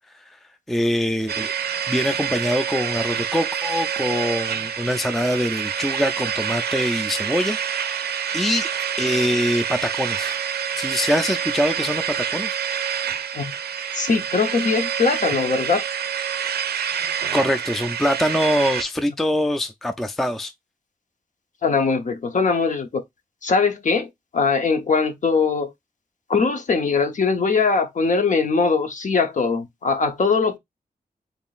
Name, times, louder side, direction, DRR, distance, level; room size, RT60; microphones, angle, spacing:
voice 1, 0.7-1.5 1.9-8.7 9.0-10.4 10.8-12.6 17.3-20.5, equal, ahead, 0.3 m, -24 dB
sound 1, 1.3-18.8, right 8 dB, 85° right, 0.5 m, -27 dB
voice 2, 13.9-15.8 21.6-23.0 23.4-25.7 26.3-30.6, left 4 dB, 50° left, 0.8 m, -21 dB
3.9 x 3.6 x 2.3 m
wide cardioid pair, 135°, 16 cm